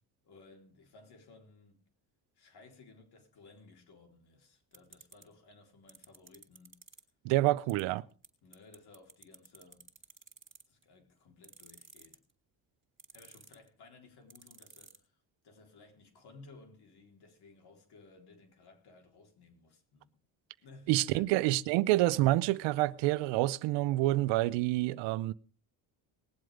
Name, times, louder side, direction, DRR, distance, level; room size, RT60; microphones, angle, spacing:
voice 1, 0.2-1.8 2.4-6.8 7.6-7.8 8.4-9.9 10.7-12.2 13.1-20.1 20.6-21.5, left 3 dB, 60° left, 4.2 m, -58 dB
sound 1, 4.7-5.2 5.9-7.0 7.7-7.8 8.2-8.3 8.5-10.8 11.4-12.3 13.0-13.7 14.3-15.0, right 4 dB, 25° right, 3.2 m, -53 dB
voice 2, 7.2-8.0 20.9-25.3, right 17 dB, 90° right, 0.6 m, -28 dB
20.0 x 7.8 x 5.1 m
cardioid pair, 85°, 43 cm